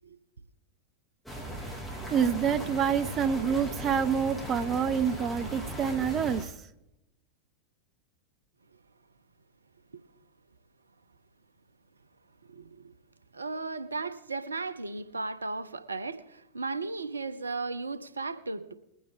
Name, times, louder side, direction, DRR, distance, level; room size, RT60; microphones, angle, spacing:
sound 1, 1.3-6.4, right 1 dB, ahead, 3.1 m, -38 dB
voice 1, 2.1-6.5, right 7 dB, 30° right, 0.7 m, -27 dB
voice 2, 12.5-12.9 13.3-18.7, right 3 dB, 75° right, 0.8 m, -35 dB
21.5 x 9.3 x 3.5 m
figure-of-eight pair, 90°, 0 cm